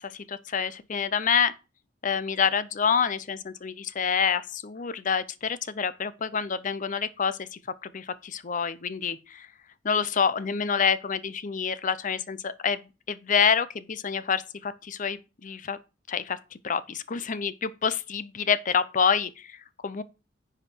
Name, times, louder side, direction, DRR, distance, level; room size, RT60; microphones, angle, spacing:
voice 1, 0.0-1.5 2.0-9.5 9.8-12.8 13.1-15.8 16.1-16.4 16.6-20.0, left 6 dB, 45° left, 0.6 m, -27 dB
9.9 x 4.9 x 4.5 m
head